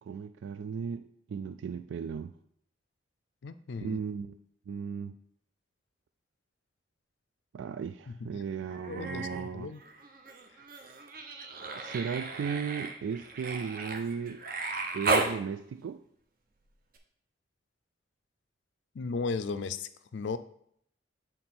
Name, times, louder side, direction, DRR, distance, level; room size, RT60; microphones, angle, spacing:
voice 1, 0.0-2.3 3.8-4.4 4.7-5.1 7.5-9.7 11.8-14.4 14.9-16.0, right 6 dB, 75° right, 0.3 m, -36 dB
voice 2, 3.4-4.0 8.1-8.2 8.9-9.8 18.9-20.4, left 4 dB, 70° left, 0.4 m, -35 dB
Human voice, 8.7-9.4 9.7-15.4 16.9-17.0, right 3 dB, 50° right, 0.8 m, -35 dB
7.7 x 3.9 x 4.3 m
head